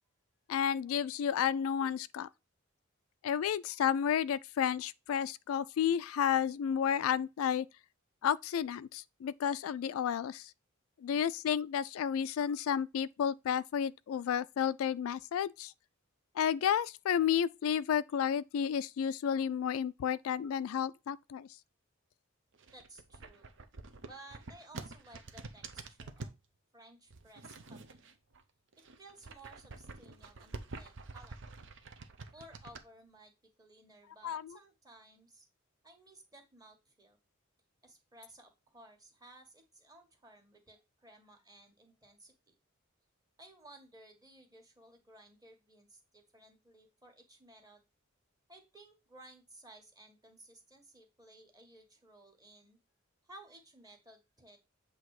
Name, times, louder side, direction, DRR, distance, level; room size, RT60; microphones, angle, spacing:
voice 1, 0.5-2.3 3.2-7.7 8.2-10.5 11.0-15.7 16.4-21.5 34.2-34.6, left 8 dB, 75° left, 0.3 m, -31 dB
sound 1, 22.5-26.4 27.1-28.4 28.7-32.8, right 3 dB, 60° right, 0.8 m, -47 dB
voice 2, 22.7-23.5 24.0-26.3 26.7-28.0 29.0-31.4 32.3-33.3 33.6-35.5 35.8-37.2 37.8-42.6 43.4-47.8 48.5-52.8 53.2-54.6, right 2 dB, 20° right, 1.5 m, -57 dB
7.9 x 2.9 x 4.7 m
head